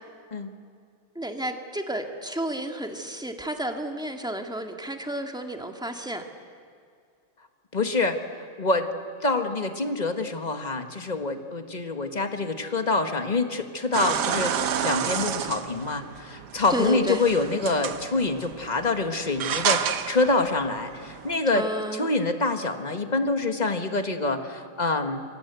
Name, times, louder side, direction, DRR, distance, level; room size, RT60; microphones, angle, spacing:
voice 1, 1.2-6.2 16.7-17.2 21.5-22.1, right 1 dB, ahead, 4 dB, 1.7 m, -31 dB
voice 2, 7.7-8.9 9.2-21.6 21.9-25.2, left 3 dB, 25° left, 7 dB, 1.4 m, -26 dB
sound 1, 13.9-21.4, right 8 dB, 65° right, 1.6 m, -30 dB
28.0 x 24.5 x 8.1 m, 2.3 s
omnidirectional pair, 2.0 m